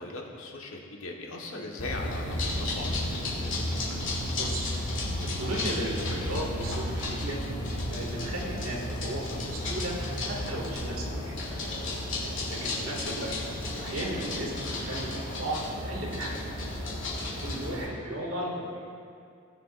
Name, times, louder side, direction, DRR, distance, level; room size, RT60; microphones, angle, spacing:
voice 1, 0.0-2.9 12.0-12.2, left 2 dB, 90° left, 0 dB, 1.4 m, -39 dB
sound 1, 1.8-17.8, left 1 dB, 60° left, 2.6 m, -33 dB
voice 2, 4.3-4.6 5.2-7.4 7.8-11.3 12.5-13.3 13.8-16.4 17.2-18.8, right 1 dB, 85° right, -3 dB, 2.1 m, -35 dB
19.5 x 7.0 x 2.5 m, 2.4 s
head